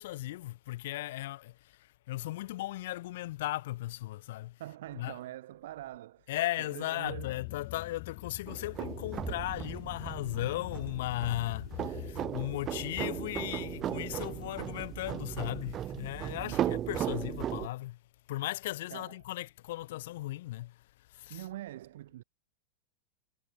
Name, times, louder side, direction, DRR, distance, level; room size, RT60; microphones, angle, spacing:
voice 1, 0.0-4.6 5.0-5.1 6.3-18.0 18.3-21.4, left 16 dB, 60° left, 7.1 m, -37 dB
voice 2, 4.6-6.3 6.6-7.4 16.4-16.9 18.9-19.2 21.3-22.2, right 14 dB, 65° right, 6.6 m, -44 dB
sound 1, 7.0-17.3, left 33 dB, 40° left, 1.7 m, -46 dB
sound 2, 8.5-17.7, right 11 dB, 20° right, 0.6 m, -37 dB
supercardioid pair, 170°, 0 cm